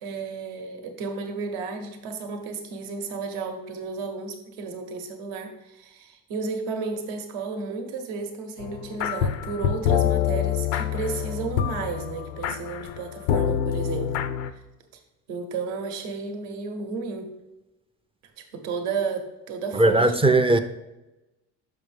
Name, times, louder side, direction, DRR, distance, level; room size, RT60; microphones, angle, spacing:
voice 1, 0.0-14.2 14.5-14.6 15.3-17.4 18.4-20.4, right 4 dB, 80° right, 0.9 m, -33 dB
sound 1, 8.6-14.5, left 9 dB, 80° left, 0.5 m, -26 dB
voice 2, 19.7-20.6, right 2 dB, 15° right, 0.3 m, -18 dB
6.2 x 5.4 x 3.3 m
supercardioid pair, 75°, 37 cm